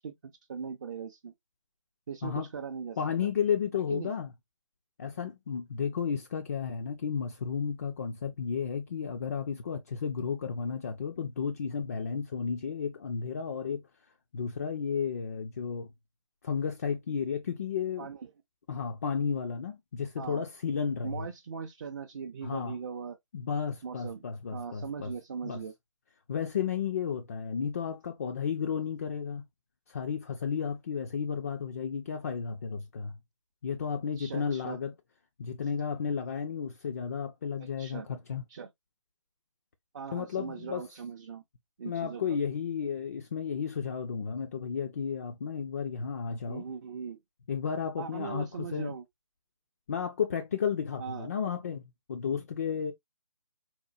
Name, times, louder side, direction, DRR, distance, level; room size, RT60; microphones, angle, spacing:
voice 1, 0.0-1.3 2.1-3.0 3.9-4.1 18.0-18.3 20.2-20.4 21.0-23.2 23.8-24.2 24.5-25.7 34.2-34.8 37.6-38.1 38.5-38.7 39.9-41.4 41.8-42.2 46.5-47.2 48.0-49.0 51.0-51.3, right 6 dB, 35° right, 0.4 m, -39 dB
voice 2, 3.0-4.3 5.0-13.8 14.3-15.9 16.4-18.1 18.7-21.3 22.4-22.8 23.3-25.1 25.4-25.6 26.3-29.4 29.9-33.2 33.6-34.9 35.4-38.4 40.1-40.9 41.8-46.7 47.5-49.0 49.9-51.8 52.1-52.9, left 6 dB, 30° left, 0.3 m, -33 dB
4.2 x 2.1 x 2.4 m
figure-of-eight pair, 145°, 17 cm